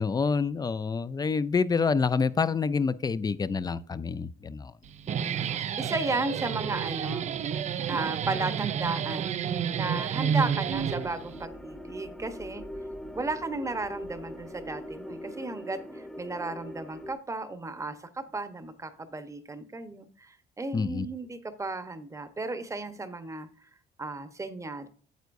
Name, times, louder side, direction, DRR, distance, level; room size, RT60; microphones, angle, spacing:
voice 1, 0.0-4.7 20.7-21.1, left 5 dB, 25° left, 15 dB, 0.5 m, -27 dB
Guitar, 4.8-11.4, right 8 dB, 45° right, 0.5 m, -30 dB
voice 2, 5.1-7.3 7.7-9.3 9.7-12.6 13.1-23.5 24.0-24.9, right 3 dB, 20° right, 10 dB, 1.0 m, -34 dB
sound 1, 10.7-17.1, equal, 5° left, 1.0 m, -42 dB
9.3 x 8.1 x 2.6 m, 0.44 s
cardioid pair, 110°, 17 cm